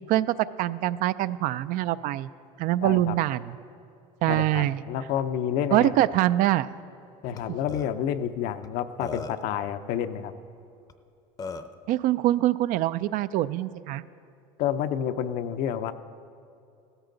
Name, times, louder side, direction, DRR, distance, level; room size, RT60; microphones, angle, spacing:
voice 1, 0.1-2.3 2.6-3.5 4.2-4.8 5.7-6.7 11.9-14.0, right 14 dB, 60° right, 15 dB, 0.4 m, -24 dB
voice 2, 2.8-3.2 4.3-6.0 7.2-10.3 14.6-15.9, left 9 dB, 65° left, 10 dB, 0.6 m, -29 dB
Burping eructation, 7.4-7.5 7.7-7.9 8.6-8.7 9.0-9.5 10.9-11.0 11.4-11.8, left 4 dB, 25° left, 0.6 m, -36 dB
15.5 x 13.5 x 3.9 m, 2.7 s
supercardioid pair, 110°, 16 cm